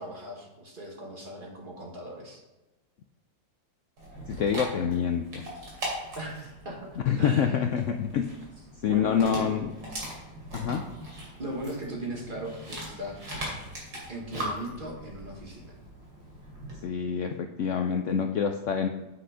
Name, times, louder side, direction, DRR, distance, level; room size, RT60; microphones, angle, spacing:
voice 1, 0.0-2.4 6.2-6.9 7.2-7.6 8.8-9.6 11.4-13.2 14.1-15.7, right 1 dB, 30° right, -1 dB, 1.6 m, -38 dB
Dog, 4.0-16.8, right 1 dB, 85° right, 3.6 m, -40 dB
voice 2, 4.3-5.4 7.1-8.3 8.8-9.7 10.5-10.8 16.8-18.9, left 7 dB, 85° left, 5 dB, 0.6 m, -26 dB
8.3 x 5.9 x 4.9 m, 1.1 s
omnidirectional pair, 1.9 m